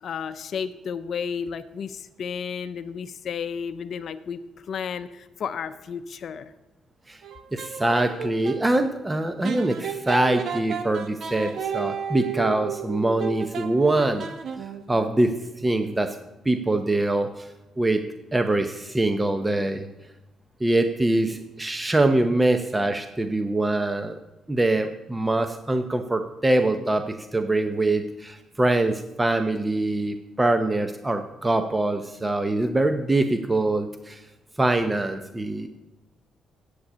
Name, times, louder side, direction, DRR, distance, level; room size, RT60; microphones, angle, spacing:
voice 1, 0.0-4.4 4.7-6.5, left 6 dB, 60° left, 11 dB, 0.6 m, -32 dB
Cuban Style Saxophone Loop, 7.2-8.6 9.4-14.9, right 7 dB, 65° right, 1.1 m, -32 dB
voice 2, 7.5-14.3 14.9-16.2 16.4-18.0 18.3-19.9 20.6-24.2 24.5-34.2 34.6-35.7, right 2 dB, 15° right, 8 dB, 0.7 m, -24 dB
8.2 x 7.8 x 8.5 m, 1.0 s
cardioid pair, 90°, 0 cm